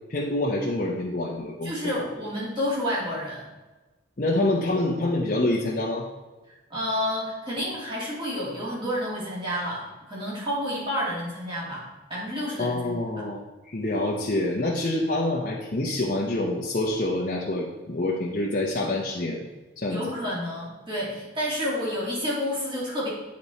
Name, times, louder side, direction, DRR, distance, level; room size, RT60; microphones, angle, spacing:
voice 1, 0.1-1.9 4.2-6.1 12.6-13.4 13.7-19.4 19.8-20.0, left 1 dB, 45° left, -4 dB, 0.7 m, -26 dB
voice 2, 1.6-3.5 6.5-11.8 12.1-13.0 19.9-23.1, equal, 25° right, -7 dB, 2.5 m, -30 dB
8.2 x 4.2 x 4.2 m, 1.2 s
head